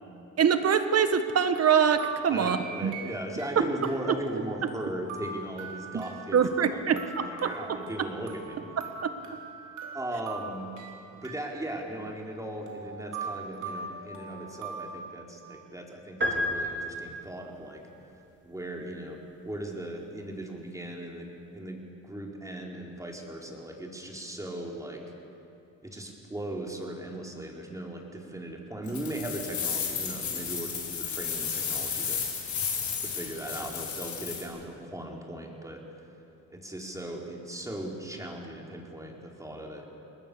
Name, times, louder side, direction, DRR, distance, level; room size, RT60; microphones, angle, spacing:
voice 1, 0.4-2.9 3.5-3.6 4.1-4.2 6.3-7.8 9.0-9.1, right 7 dB, 55° right, 9 dB, 1.7 m, -24 dB
sound 1, 1.3-3.6 3.8-15.0, right 4 dB, 75° right, 3.9 m, -42 dB
voice 2, 2.3-8.6 9.9-10.7 11.2-17.8 18.4-19.2 19.4-25.0 25.8-32.2 33.0-35.8 36.5-39.9, right 1 dB, 10° right, 0 dB, 4.5 m, -38 dB
sound 2, 16.2-17.5, left 1 dB, 40° right, 4.5 m, -30 dB
sound 3, 28.9-34.4, left 6 dB, 70° left, 5.7 m, -33 dB
28.5 x 20.5 x 7.1 m, 2.7 s
cardioid pair, 90°, 30 cm